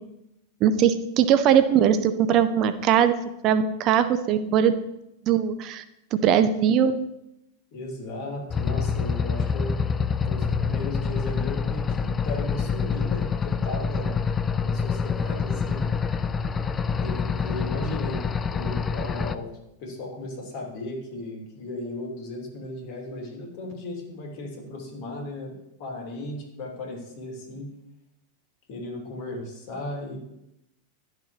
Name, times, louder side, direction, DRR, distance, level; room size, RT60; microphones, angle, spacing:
voice 1, 0.6-3.2 3.4-4.8 5.3-5.8 6.1-7.1, right 8 dB, 35° right, 10 dB, 0.5 m, -20 dB
voice 2, 7.7-9.8 10.2-14.2 14.6-15.9 16.9-18.3 18.5-19.5 19.8-25.5 25.8-27.7 28.7-30.2, left 2 dB, 45° left, -1 dB, 2.8 m, -36 dB
sound 1, 8.5-19.3, left 5 dB, 20° left, 0.4 m, -26 dB
12.0 x 6.7 x 3.2 m, 0.85 s
figure-of-eight pair, 90°, 0 cm